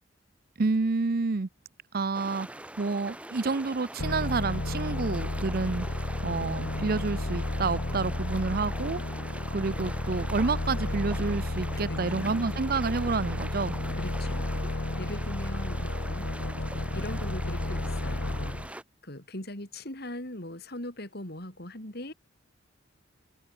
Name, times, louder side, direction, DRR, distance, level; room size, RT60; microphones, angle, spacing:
voice 1, 0.6-1.5 1.9-2.5 2.8-5.9 6.2-9.0 9.5-13.8, right 4 dB, 50° right, 0.6 m, -29 dB
sound 1, 2.1-18.8, right 1 dB, 5° right, 1.2 m, -43 dB
sound 2, 4.0-18.7, left 1 dB, 85° left, 1.7 m, -32 dB
voice 2, 13.9-16.3 16.9-18.6 19.0-22.1, left 1 dB, 55° left, 5.1 m, -40 dB
open air
head